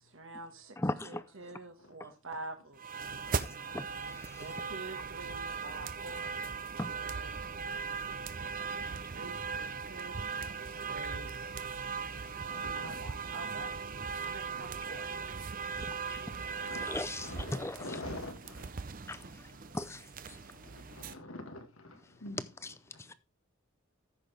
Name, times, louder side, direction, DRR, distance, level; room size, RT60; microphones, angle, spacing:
voice 1, 0.0-0.8 1.0-3.0 4.4-6.5 6.8-7.4 9.1-10.3 10.5-11.5 12.7-13.7 14.2-15.1, right 2 dB, 75° right, 1.5 m, -47 dB
voice 2, 0.8-1.2 3.3-3.4 3.7-3.9 6.8-6.9 16.1-16.2 16.9-17.8, left 1 dB, 15° left, 0.5 m, -35 dB
sound 1, 2.8-21.1, right 5 dB, 40° right, 0.6 m, -39 dB
voice 3, 7.4-7.7 12.2-13.0 16.4-16.8 17.2-18.7 20.6-22.7, left 2 dB, 80° left, 2.2 m, -46 dB
14.5 x 6.2 x 3.3 m
head